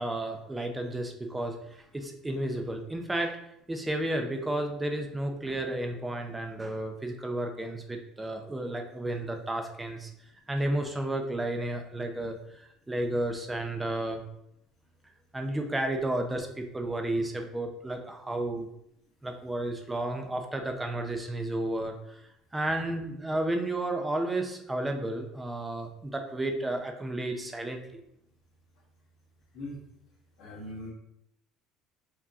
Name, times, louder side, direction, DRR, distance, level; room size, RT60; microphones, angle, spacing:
voice 1, 0.0-3.4 3.7-10.1 10.5-14.2 15.3-18.7 19.2-27.8, right 1 dB, 10° right, 4 dB, 0.6 m, -32 dB
voice 2, 30.4-30.9, left 1 dB, 60° left, -8 dB, 1.4 m, -40 dB
4.9 x 2.8 x 3.6 m, 0.79 s
cardioid pair, 130°, 0 cm